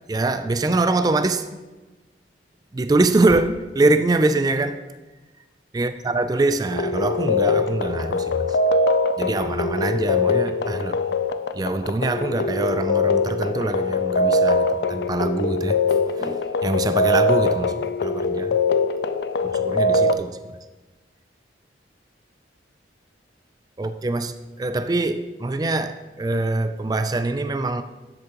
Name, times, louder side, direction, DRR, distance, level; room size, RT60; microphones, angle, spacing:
voice 1, 0.1-1.5 2.7-4.9 5.7-8.6 9.2-11.0 11.5-18.6 19.4-20.4 23.8-27.8, right 2 dB, 20° right, 0.3 m, -24 dB
sound 1, 6.7-20.1, left 3 dB, 65° left, 0.4 m, -22 dB
10.0 x 8.1 x 2.9 m
head